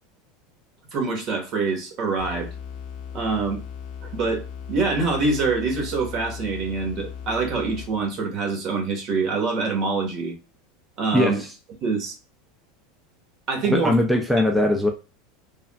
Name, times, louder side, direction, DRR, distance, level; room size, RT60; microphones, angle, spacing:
voice 1, 0.9-2.5 3.1-3.6 4.0-10.3 11.0-11.4 11.8-12.1 13.5-13.9, right 4 dB, 45° right, 1.2 m, -25 dB
sound 1, 2.2-8.2, left 7 dB, 65° left, 0.8 m, -37 dB
voice 2, 11.1-11.5 13.6-14.9, left 1 dB, ahead, 0.4 m, -20 dB
3.4 x 2.3 x 2.2 m
supercardioid pair, 120°, 0 cm